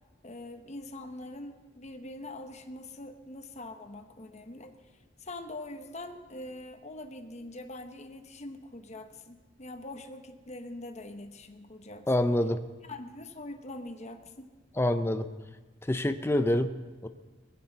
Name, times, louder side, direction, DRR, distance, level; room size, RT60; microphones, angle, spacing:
voice 1, 0.2-4.7 5.2-12.2 12.9-14.5, left 2 dB, 40° left, 6 dB, 1.1 m, -43 dB
voice 2, 12.1-12.6 14.8-15.3 15.9-16.7 17.0-17.1, left 1 dB, 15° left, 9 dB, 0.5 m, -26 dB
20.0 x 15.5 x 4.0 m, 1.3 s
head